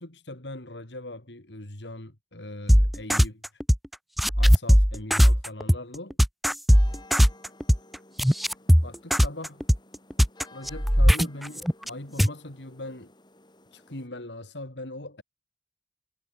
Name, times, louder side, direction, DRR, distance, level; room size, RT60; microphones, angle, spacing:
voice 1, 0.0-3.4 4.4-6.2 8.8-9.6 10.5-13.1 13.7-15.2, left 1 dB, 75° left, 3.5 m, -40 dB
sound 1, 2.7-3.9 4.2-11.9 12.2-12.3, equal, ahead, 0.5 m, -18 dB
sound 2, 6.7-14.1, left 2 dB, 25° left, 5.5 m, -54 dB
head